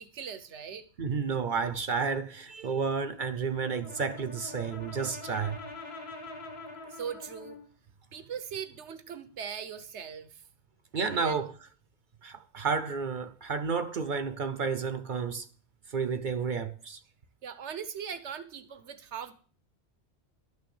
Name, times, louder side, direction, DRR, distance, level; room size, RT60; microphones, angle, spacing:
voice 1, 0.0-0.8 6.9-7.6 8.1-10.4 11.1-11.4 17.4-19.3, right 7 dB, 85° right, 1.3 m, -40 dB
voice 2, 1.0-5.6 10.9-11.5 12.2-15.5 15.9-17.0, right 5 dB, 50° right, 0.8 m, -31 dB
Brass instrument, 3.5-7.7, left 3 dB, 65° left, 1.9 m, -44 dB
12.0 x 6.4 x 7.0 m
omnidirectional pair, 1.1 m